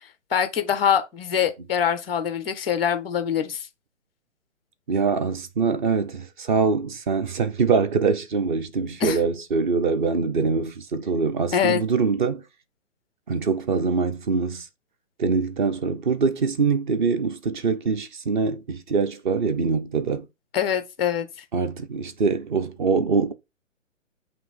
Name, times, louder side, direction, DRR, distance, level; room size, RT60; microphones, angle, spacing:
voice 1, 0.3-3.6 9.0-9.2 11.5-11.8 20.5-21.3, left 8 dB, 10° left, 0.4 m, -24 dB
voice 2, 4.9-12.4 13.3-14.7 15.2-20.3 21.5-23.3, right 5 dB, 40° right, 0.9 m, -24 dB
7.5 x 3.0 x 5.4 m
figure-of-eight pair, 130°, 39 cm